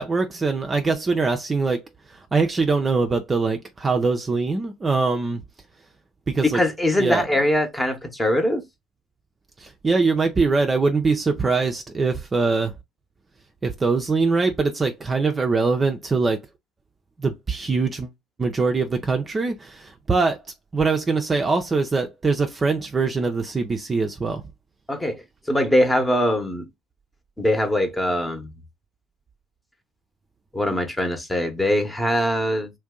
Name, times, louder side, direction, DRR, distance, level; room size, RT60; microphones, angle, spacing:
voice 1, 0.0-1.8 2.3-5.4 6.3-6.6 7.0-7.3 9.6-12.7 13.6-16.4 17.2-18.1 18.4-20.4 20.7-24.4, right 4 dB, 25° right, 0.5 m, -22 dB
voice 2, 6.4-8.6 24.9-25.2 25.5-26.6 27.4-28.5 30.5-32.7, left 1 dB, 10° left, 0.9 m, -22 dB
2.6 x 2.2 x 3.6 m
hypercardioid pair, 65°, 0 cm